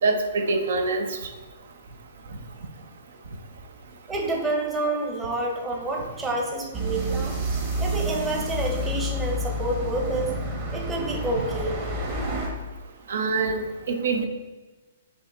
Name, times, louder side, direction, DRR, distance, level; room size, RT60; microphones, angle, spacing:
voice 1, 0.0-1.1 13.1-14.3, right 3 dB, 70° right, 5 dB, 0.6 m, -24 dB
voice 2, 4.1-7.4 7.8-10.4 10.7-11.7, right 2 dB, 15° right, 0 dB, 0.8 m, -28 dB
sound 1, 6.7-12.5, right 1 dB, 35° right, 1.2 m, -29 dB
5.3 x 2.9 x 3.3 m, 1.2 s
hypercardioid pair, 125°, 0 cm